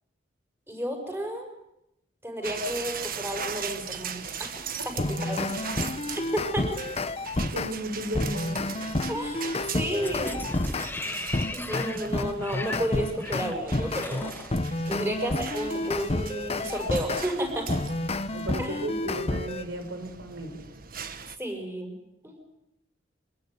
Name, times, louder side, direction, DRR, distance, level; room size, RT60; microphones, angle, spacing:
voice 1, 0.7-1.5 2.2-4.5 4.8-5.5 6.2-6.8 9.1-10.4 11.5-14.3 14.9-17.8 18.6-18.8 21.4-22.0 22.2-22.4, equal, 15° right, 4 dB, 5.9 m, -32 dB
sound 1, 2.4-21.4, right 7 dB, 50° right, 1.5 m, -40 dB
sound 2, 5.0-7.7 8.1-10.9 11.3-17.3 17.7-19.6, left 2 dB, 35° left, 1.1 m, -30 dB
voice 2, 7.5-8.7 14.9-15.0 18.3-20.6, right 1 dB, 80° right, 6 dB, 4.9 m, -35 dB
sound 3, 10.0-15.2 15.6-15.7, left 2 dB, 10° left, 0.9 m, -37 dB
25.0 x 20.0 x 9.5 m, 0.85 s
head